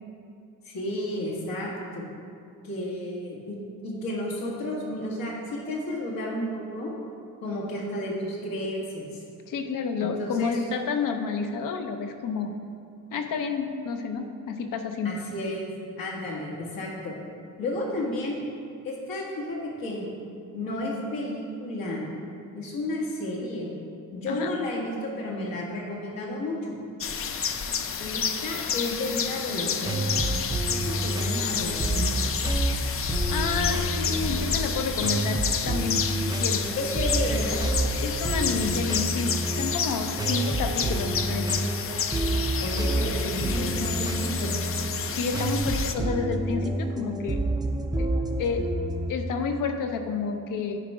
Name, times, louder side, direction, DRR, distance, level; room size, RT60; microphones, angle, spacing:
voice 1, 0.6-2.1 2.6-3.6 3.8-6.9 7.4-9.2 10.0-10.6 15.0-15.7 16.0-17.1 17.6-18.4 18.8-20.1 20.5-22.1 22.5-23.7 24.1-26.7 28.0-30.2 30.7-32.3 36.8-37.6 40.2-40.3 42.6-44.5, left 1 dB, 85° left, -4 dB, 1.9 m, -32 dB
voice 2, 9.5-12.5 13.1-15.2 24.3-24.5 33.3-36.7 38.0-41.6 45.1-47.4 48.0-48.1 48.4-48.7 49.1-50.8, left 5 dB, 70° left, 6 dB, 0.8 m, -30 dB
sound 1, 27.0-45.9, left 7 dB, 40° left, 0.5 m, -30 dB
sound 2, 29.5-49.1, right 1 dB, 10° right, 0.4 m, -29 dB
10.0 x 4.6 x 4.9 m, 2.5 s
cardioid pair, 135°, 34 cm